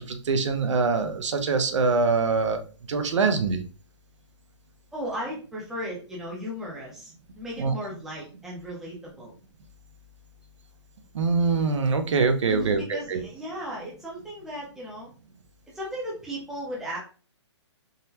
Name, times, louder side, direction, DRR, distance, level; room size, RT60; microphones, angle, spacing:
voice 1, 0.0-2.6 2.9-3.6 7.6-7.7 11.1-13.2, right 4 dB, 80° right, 8 dB, 0.6 m, -24 dB
voice 2, 4.9-9.3 12.4-15.1 15.7-17.0, equal, ahead, -5 dB, 0.5 m, -36 dB
3.8 x 2.1 x 2.7 m, 0.36 s
hypercardioid pair, 165°, 15 cm